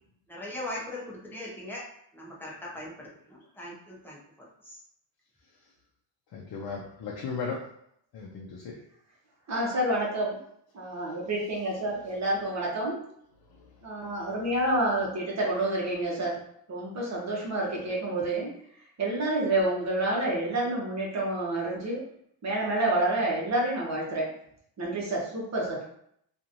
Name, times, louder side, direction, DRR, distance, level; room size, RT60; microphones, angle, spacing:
voice 1, 0.3-1.8 2.1-4.8, left 1 dB, 5° left, -5 dB, 0.7 m, -40 dB
voice 2, 6.3-7.6 8.1-8.8 13.5-13.6, left 5 dB, 55° left, -2 dB, 0.6 m, -36 dB
voice 3, 9.5-10.4 10.7-13.0 13.8-16.3 16.7-18.5 19.0-22.0 22.4-24.3 24.8-25.8, right 1 dB, 35° right, -3 dB, 1.0 m, -28 dB
2.9 x 2.6 x 2.5 m, 0.70 s
cardioid pair, 140°, 45 cm